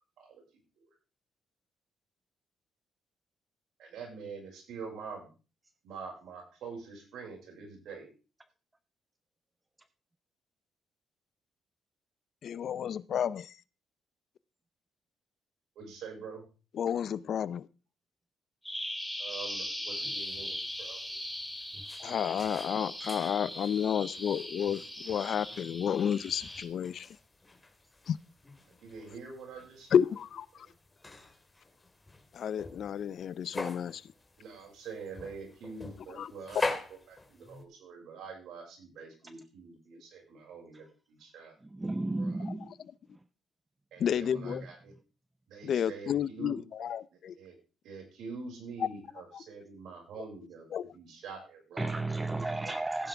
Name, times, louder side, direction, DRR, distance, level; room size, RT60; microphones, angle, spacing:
voice 1, 0.2-0.9 3.8-5.3 5.8-8.1 15.8-16.4 19.2-21.0 28.8-29.9 30.6-30.7 34.4-41.5 42.1-42.5 43.9-44.9 45.5-46.9 47.3-47.5 47.8-50.6 50.9-52.0 52.3-52.7, right 5 dB, 80° right, 5.9 m, -45 dB
voice 2, 12.4-13.6 16.7-17.7 22.0-27.1 28.1-28.2 29.9-30.7 32.3-34.1 36.1-36.3 42.4-42.9 44.0-44.6 45.6-47.4 48.8-48.9 49.3-49.4 50.7-50.9, left 8 dB, 60° left, 0.5 m, -31 dB
Bird vocalization bird call bird song, 18.6-26.6, left 1 dB, ahead, 2.4 m, -39 dB
sound 1, 20.0-37.6, left 2 dB, 20° left, 2.3 m, -44 dB
voice 3, 41.7-42.7 51.8-53.1, right 2 dB, 15° right, 0.7 m, -33 dB
15.5 x 9.8 x 3.5 m
cardioid pair, 90°, 0 cm